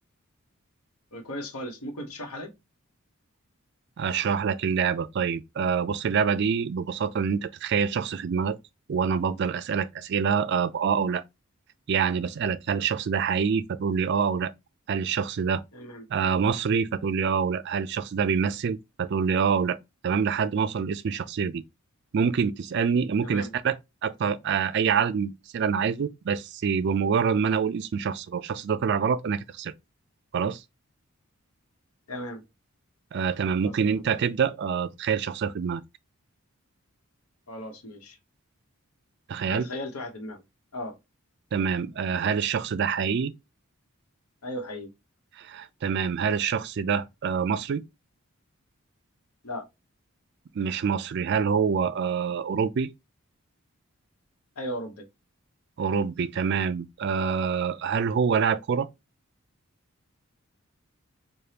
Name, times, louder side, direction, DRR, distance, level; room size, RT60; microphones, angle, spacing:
voice 1, 1.1-2.5 15.7-16.0 23.2-23.6 32.1-32.4 33.6-34.0 37.5-38.2 39.5-40.4 40.7-41.0 44.4-44.9 49.4-49.7 54.6-55.1, left 1 dB, 85° left, 1.0 m, -36 dB
voice 2, 4.0-8.6 8.9-11.2 11.9-14.5 14.9-15.6 16.1-19.8 20.0-21.6 22.1-29.7 30.3-30.6 33.1-35.8 39.3-39.7 41.5-43.3 45.4-47.8 50.6-52.9 55.8-58.9, right 6 dB, 50° right, 0.3 m, -26 dB
5.0 x 2.2 x 2.8 m
head